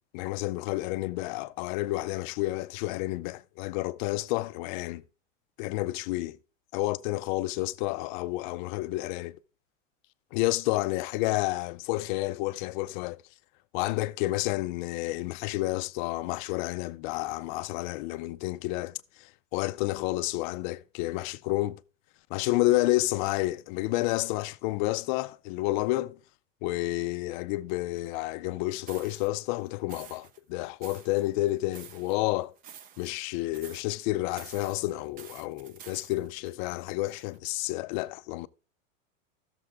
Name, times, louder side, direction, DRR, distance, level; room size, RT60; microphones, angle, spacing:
voice 1, 0.1-5.0 5.6-6.4 6.7-9.4 10.3-13.2 13.7-21.8 22.3-26.2 26.6-32.5 33.0-38.5, left 18 dB, 40° left, 0.4 m, -30 dB
sound 1, 28.9-29.3 29.9-30.4 30.8-32.2 32.6-33.3 33.5-34.0 34.4-37.4, right 8 dB, 25° right, 0.4 m, -50 dB
14.5 x 6.9 x 3.5 m
supercardioid pair, 145°, 39 cm